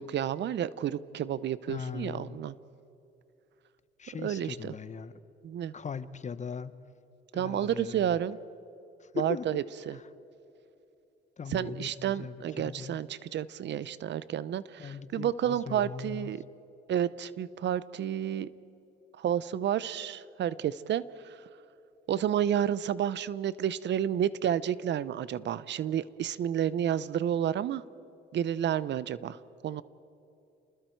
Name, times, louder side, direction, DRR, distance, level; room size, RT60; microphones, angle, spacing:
voice 1, 0.0-2.5 4.2-4.7 5.4-5.7 7.3-8.4 9.1-10.0 11.5-16.4 16.9-18.5 19.2-21.4 22.1-27.8 28.3-29.8, right 10 dB, 65° right, 18 dB, 0.7 m, -31 dB
voice 2, 1.7-2.4 4.0-5.1 5.7-6.8 7.3-8.2 9.1-9.5 9.9-10.0 11.4-13.0 14.8-16.3, left 6 dB, 35° left, 15 dB, 0.9 m, -39 dB
29.0 x 20.5 x 4.6 m, 2.9 s
cardioid pair, 90°, 20 cm